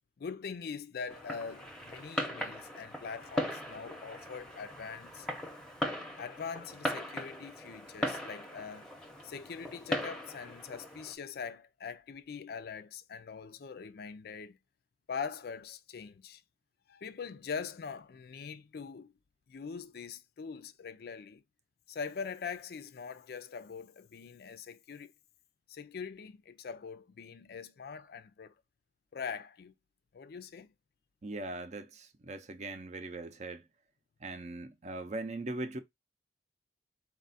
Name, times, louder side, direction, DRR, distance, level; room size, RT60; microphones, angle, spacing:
voice 1, 0.2-5.3 6.2-8.9 9.2-14.6 15.1-16.4 16.9-19.1 19.5-21.4 21.9-25.1 25.7-28.5 29.1-29.7 30.1-30.7, left 6 dB, 60° left, 0.4 m, -42 dB
Fireworks, 1.1-11.1, left 1 dB, 5° left, 0.7 m, -39 dB
voice 2, 31.2-33.6 34.2-35.8, right 2 dB, 40° right, 0.6 m, -40 dB
4.1 x 2.4 x 4.0 m
head